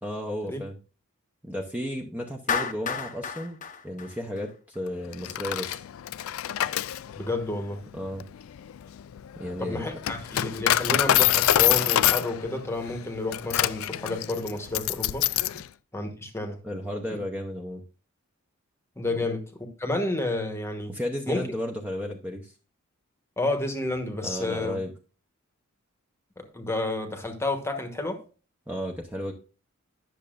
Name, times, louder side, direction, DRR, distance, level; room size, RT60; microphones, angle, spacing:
voice 1, 0.0-0.8 1.4-3.6 3.8-5.8 7.9-8.2 9.4-10.0 15.5-15.6 16.6-17.8 20.9-22.5 24.2-24.9 28.7-29.3, equal, 5° right, 0.8 m, -33 dB
Clapping, 2.5-4.8, left 6 dB, 35° left, 0.7 m, -31 dB
Coin (dropping), 5.1-15.6, left 13 dB, 70° left, 0.3 m, -26 dB
voice 2, 7.1-7.8 9.6-15.3 15.9-16.6 17.1-17.2 19.0-19.4 19.8-20.9 21.3-21.4 23.4-24.8 26.4-28.2, left 2 dB, 10° left, 1.1 m, -30 dB
10.5 x 6.7 x 2.5 m
head